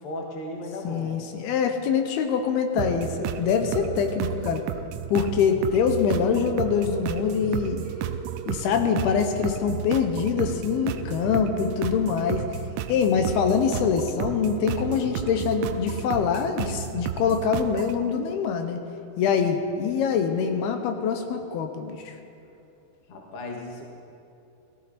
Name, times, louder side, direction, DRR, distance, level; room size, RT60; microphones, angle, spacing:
voice 1, 0.0-1.1 23.1-23.8, left 1 dB, 45° left, 0 dB, 2.0 m, -35 dB
voice 2, 0.8-4.6 5.1-7.8 8.5-12.4 12.9-18.8 19.2-22.0, left 6 dB, 75° left, 6 dB, 2.7 m, -24 dB
sound 1, 2.8-18.0, right 9 dB, 90° right, 2.8 m, -32 dB
18.5 x 15.0 x 4.2 m, 2.7 s
omnidirectional pair, 4.8 m